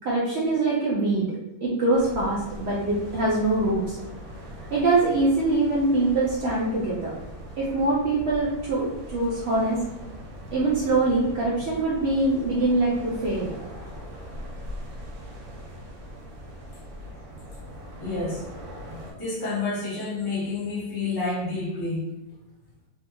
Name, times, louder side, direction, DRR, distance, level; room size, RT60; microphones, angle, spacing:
voice 1, 0.0-1.4 1.6-4.0 4.7-7.1 7.6-9.8 10.5-13.5, right 2 dB, 80° right, -5 dB, 0.5 m, -23 dB
sound 1, 1.9-19.1, equal, 60° right, 1.0 m, -41 dB
voice 2, 18.0-18.5 18.9-22.1, left 3 dB, 30° left, -8 dB, 0.4 m, -29 dB
3.4 x 2.9 x 2.2 m, 0.96 s
omnidirectional pair, 1.8 m